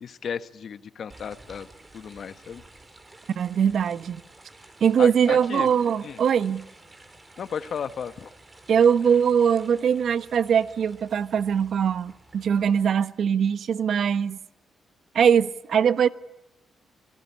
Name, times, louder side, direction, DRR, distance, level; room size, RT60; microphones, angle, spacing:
voice 1, 0.0-1.7 1.9-2.6 5.0-5.7 6.0-6.2 7.4-8.3, left 7 dB, 60° left, 1.3 m, -34 dB
sound 1, 1.1-12.9, right 2 dB, 25° right, 5.0 m, -51 dB
voice 2, 3.4-4.2 4.8-6.6 8.7-14.4 15.1-16.1, right 7 dB, 65° right, 1.1 m, -21 dB
27.0 x 19.5 x 10.0 m
cardioid pair, 85°, 0 cm